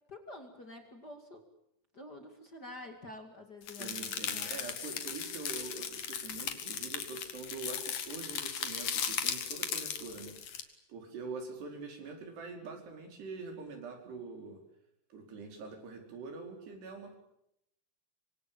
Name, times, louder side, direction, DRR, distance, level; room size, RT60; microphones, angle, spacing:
voice 1, 0.1-1.5 1.9-4.6, left 2 dB, 30° left, 5 dB, 2.3 m, -48 dB
sound 1, 3.7-10.6, left 8 dB, 55° left, 3.2 m, -37 dB
voice 2, 3.8-14.6 15.1-17.2, right 4 dB, 90° right, 4 dB, 6.7 m, -44 dB
25.5 x 24.5 x 8.7 m, 0.78 s
omnidirectional pair, 4.6 m